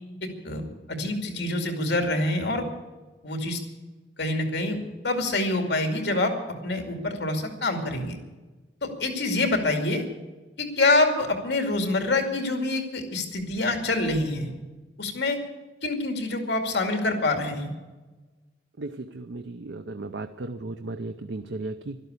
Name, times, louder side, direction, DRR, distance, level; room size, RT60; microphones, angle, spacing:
voice 1, 0.2-0.6 0.9-2.7 3.2-3.6 4.2-4.8 5.0-6.3 6.6-8.2 8.8-10.0 10.6-14.5 15.0-15.4 15.8-17.7, left 2 dB, 70° left, 4 dB, 2.4 m, -26 dB
voice 2, 18.8-22.0, right 2 dB, 75° right, 9 dB, 0.6 m, -35 dB
12.5 x 12.5 x 8.3 m, 1.2 s
head